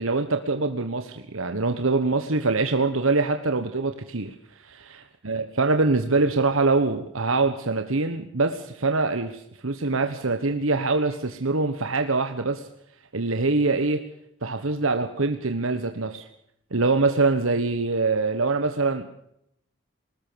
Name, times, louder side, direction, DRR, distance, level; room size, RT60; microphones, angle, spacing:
voice 1, 0.0-12.7 13.1-14.0 14.4-16.2 16.7-19.1, right 3 dB, 80° right, 7 dB, 1.4 m, -24 dB
21.5 x 19.5 x 7.0 m, 0.75 s
head